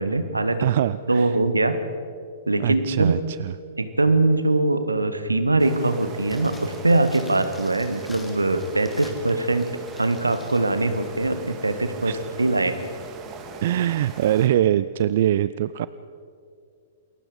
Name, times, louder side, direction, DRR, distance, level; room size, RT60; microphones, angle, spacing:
voice 1, 0.0-0.7 1.1-1.8 2.5-3.1 3.8-9.7 10.0-12.1 12.4-12.8, right 2 dB, 85° right, 10 dB, 1.7 m, -22 dB
voice 2, 0.6-1.4 2.6-3.6 12.1-12.2 13.6-15.9, right 12 dB, 55° right, 16 dB, 0.5 m, -23 dB
sound 1, 5.6-14.5, right 5 dB, 30° right, 2.8 m, -40 dB
sound 2, 6.2-10.7 10.9-11.0, left 2 dB, 10° left, 2.7 m, -48 dB
28.5 x 21.5 x 5.2 m, 2.4 s
figure-of-eight pair, 110°, 0 cm